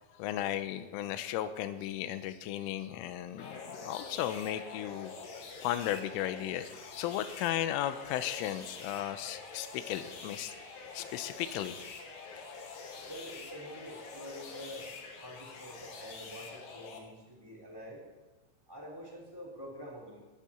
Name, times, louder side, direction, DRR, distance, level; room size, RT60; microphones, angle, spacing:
voice 1, 0.2-5.1 5.6-6.7 7.0-10.5 10.9-11.8, left 12 dB, 85° left, 11 dB, 3.2 m, -35 dB
sound 1, 3.4-17.0, left 4 dB, 60° left, 3.6 m, -46 dB
voice 2, 13.1-14.9 15.2-18.0 18.7-20.2, equal, 5° right, -3 dB, 2.5 m, -46 dB
21.0 x 10.0 x 4.4 m, 1.2 s
omnidirectional pair, 5.8 m